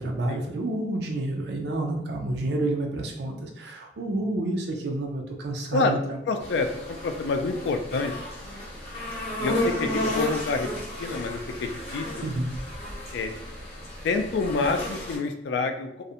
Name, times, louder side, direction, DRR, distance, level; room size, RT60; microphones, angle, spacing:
voice 1, 0.0-6.2 7.9-8.0 12.2-12.5, right 2 dB, 75° right, 2 dB, 0.4 m, -29 dB
voice 2, 6.3-6.7 7.0-8.1 9.4-10.7 11.0-12.3 13.1-13.3 14.0-15.9, left 3 dB, 85° left, 6 dB, 0.3 m, -27 dB
sound 1, 6.4-15.2, left 1 dB, 35° left, 0.6 m, -33 dB
2.4 x 2.0 x 2.7 m, 0.78 s
head